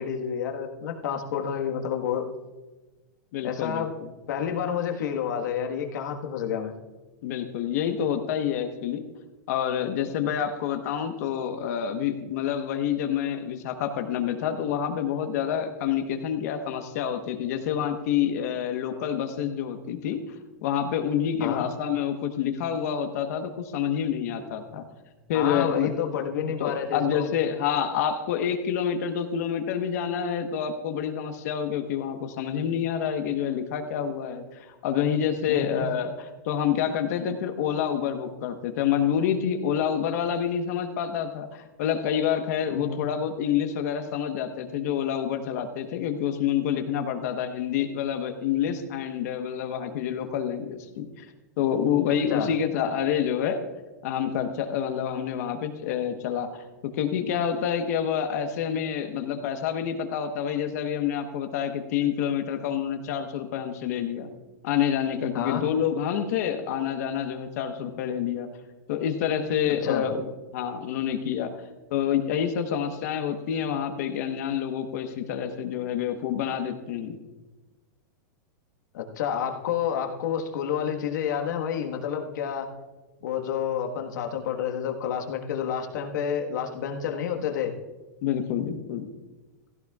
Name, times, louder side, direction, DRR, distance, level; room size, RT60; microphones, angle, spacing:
voice 1, 0.0-2.3 3.4-3.9 4.3-6.7 21.4-21.6 25.3-27.3 35.5-35.9 42.7-43.0 52.3-52.5 65.3-65.6 69.8-70.0 78.9-82.7 83.2-87.7, left 8 dB, 80° left, 3 dB, 1.5 m, -29 dB
voice 2, 3.3-4.1 7.2-9.0 9.5-20.2 20.6-24.8 25.3-25.9 26.6-51.2 51.6-53.6 54.0-56.6 56.9-64.3 64.6-68.5 68.9-70.3 70.5-71.5 71.9-77.2 88.2-89.1, left 8 dB, 60° left, 6 dB, 1.1 m, -28 dB
16.0 x 14.0 x 2.4 m, 1.2 s
supercardioid pair, 150°, 10 cm